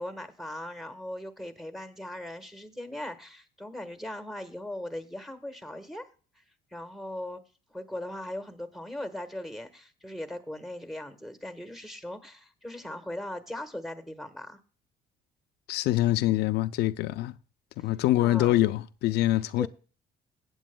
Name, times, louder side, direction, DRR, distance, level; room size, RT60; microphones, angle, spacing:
voice 1, 0.0-6.1 6.7-7.4 7.7-14.6 17.8-17.9 18.2-18.6 19.6-19.7, left 1 dB, ahead, 1.3 m, -39 dB
voice 2, 15.7-17.3 17.8-19.7, left 15 dB, 80° left, 0.4 m, -25 dB
16.5 x 8.7 x 2.2 m
cardioid pair, 110°, 17 cm